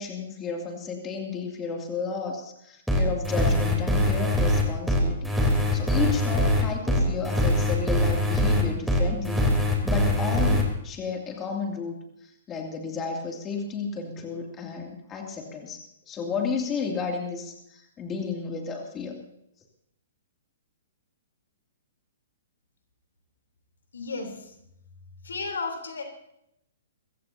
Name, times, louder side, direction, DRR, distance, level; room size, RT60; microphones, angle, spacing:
voice 1, 0.0-9.5 9.8-12.0 12.2-19.2, left 5 dB, 20° left, 1 dB, 2.7 m, -32 dB
sound 1, 2.9-10.6, left 1 dB, ahead, 3.6 m, -23 dB
voice 2, 23.9-24.5 25.2-26.0, left 4 dB, 90° left, 4 dB, 3.6 m, -33 dB
23.5 x 15.5 x 2.8 m, 0.78 s
hypercardioid pair, 135°, 0 cm